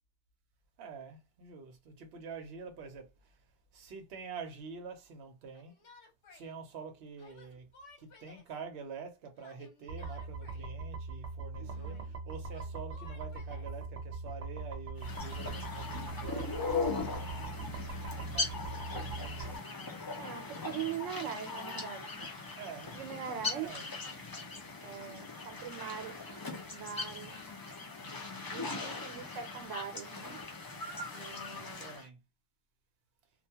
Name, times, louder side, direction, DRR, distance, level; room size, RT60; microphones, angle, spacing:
voice 1, 0.8-3.4 3.7-5.8 6.3-7.7 8.0-17.7 18.1-19.6 20.5-21.0 22.6-23.0 23.3-23.8 28.4-29.0 31.5-32.2, right 5 dB, 60° right, 0.9 m, -47 dB
Yell, 5.5-6.5 7.2-8.5 9.4-10.7 11.7-12.2 12.5-13.8 15.0-16.5 17.4-18.2, left 4 dB, 75° left, 1.1 m, -58 dB
sound 1, 9.9-19.6, right 3 dB, 45° right, 0.5 m, -41 dB
voice 2, 11.6-12.1 20.2-22.3 22.9-23.7 24.8-27.5 28.5-30.4 31.1-31.9, right 8 dB, 85° right, 1.0 m, -42 dB
sound 2, 15.0-32.0, left 3 dB, 35° left, 0.3 m, -40 dB
2.4 x 2.2 x 2.7 m
omnidirectional pair, 1.3 m